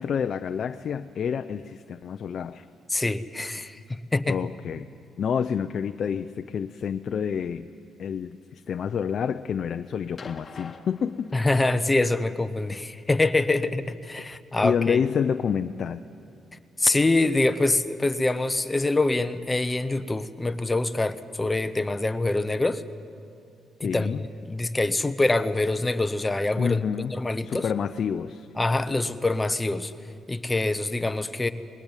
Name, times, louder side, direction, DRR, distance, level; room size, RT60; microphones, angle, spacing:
voice 1, 0.0-2.6 4.3-4.9 5.2-7.7 8.0-11.3 14.6-16.0 23.8-24.2 26.6-27.1 27.4-28.5, left 7 dB, 55° left, 8 dB, 0.6 m, -28 dB
voice 2, 2.9-3.8 4.1-4.4 11.3-15.0 16.8-22.8 23.8-26.8 27.1-27.7 28.6-29.9 30.3-31.5, left 2 dB, 15° left, 10 dB, 0.9 m, -25 dB
sound 1, 10.2-11.8 13.1-13.2, left 4 dB, 35° left, 1.7 m, -44 dB
21.0 x 19.0 x 9.0 m, 2.5 s
cardioid pair, 90°, 0 cm